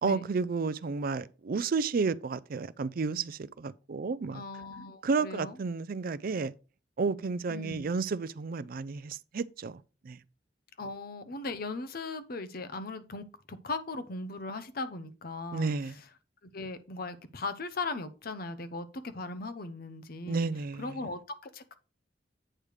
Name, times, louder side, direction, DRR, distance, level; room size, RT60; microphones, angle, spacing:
voice 1, 0.0-4.4 5.0-6.5 7.0-10.2 15.5-15.9 20.3-20.8, right 4 dB, 55° right, 0.4 m, -31 dB
voice 2, 4.3-5.6 7.5-7.8 10.8-16.1 16.4-20.5 20.8-21.8, left 3 dB, 55° left, 0.8 m, -38 dB
8.6 x 3.3 x 6.3 m
head